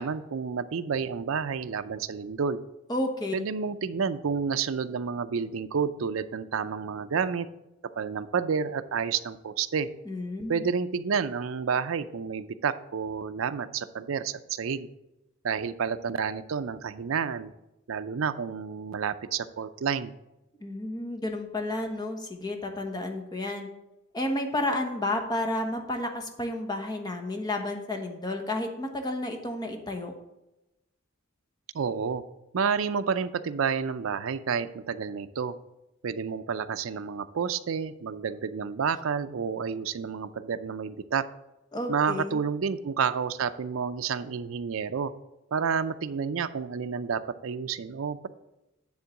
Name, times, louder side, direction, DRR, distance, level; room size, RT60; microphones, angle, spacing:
voice 1, 0.0-2.6 3.3-7.5 8.0-9.9 10.5-14.9 15.4-17.5 17.9-20.1 31.7-32.2 32.5-35.5 36.0-41.2 41.9-45.1 45.5-48.3, right 6 dB, 65° right, 11 dB, 0.5 m, -30 dB
voice 2, 2.9-3.3 10.1-10.7 20.6-23.7 24.1-30.1 41.7-42.4, left 1 dB, 20° left, 3 dB, 1.1 m, -31 dB
9.7 x 3.7 x 7.1 m, 0.93 s
head